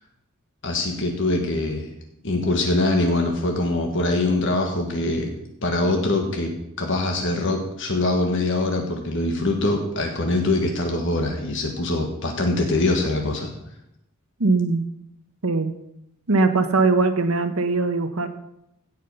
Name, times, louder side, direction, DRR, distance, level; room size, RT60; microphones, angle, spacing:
voice 1, 0.6-1.9 2.2-5.3 5.6-6.5 6.8-13.5, left 2 dB, 55° left, 2 dB, 1.5 m, -23 dB
voice 2, 14.4-14.8 15.4-15.7 16.3-18.3, right 3 dB, 75° right, 8 dB, 1.1 m, -20 dB
16.5 x 5.6 x 6.9 m, 0.84 s
head